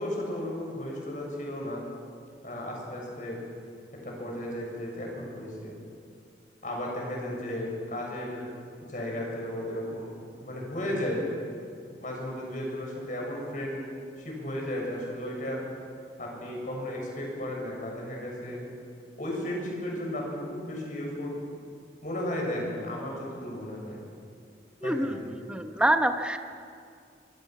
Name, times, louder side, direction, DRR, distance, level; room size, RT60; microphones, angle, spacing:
voice 1, 0.0-1.8 2.4-3.4 4.0-5.7 6.6-8.4 8.8-10.2 10.4-11.3 12.0-13.9 14.2-15.6 16.2-18.6 19.2-21.4 22.0-24.0 24.8-25.3, left 1 dB, 45° left, -1 dB, 7.2 m, -34 dB
voice 2, 24.8-26.4, right 1 dB, 5° right, 6 dB, 1.1 m, -26 dB
25.0 x 23.0 x 6.2 m, 2.3 s
head